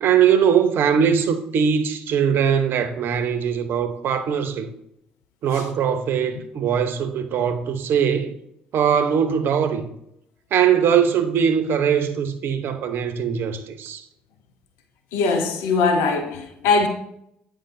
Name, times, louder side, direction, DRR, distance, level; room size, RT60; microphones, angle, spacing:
voice 1, 0.0-4.7 5.4-8.3 8.7-9.8 10.5-14.0, right 8 dB, 60° right, 0.7 m, -21 dB
voice 2, 15.1-16.9, left 4 dB, 75° left, 0.7 m, -21 dB
8.8 x 4.8 x 2.6 m
hypercardioid pair, 50°, 4 cm